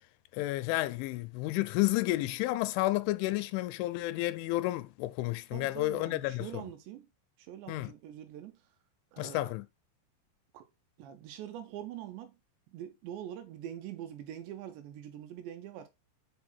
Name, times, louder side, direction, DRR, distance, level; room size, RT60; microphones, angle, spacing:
voice 1, 0.3-6.6 7.7-7.9 9.2-9.7, left 18 dB, 85° left, 2.8 m, -31 dB
voice 2, 5.5-7.1 7.4-8.6 9.1-9.5 10.5-10.7 11.0-12.3 12.7-15.9, right 11 dB, 80° right, 2.7 m, -44 dB
9.5 x 4.0 x 4.3 m
omnidirectional pair, 5.6 m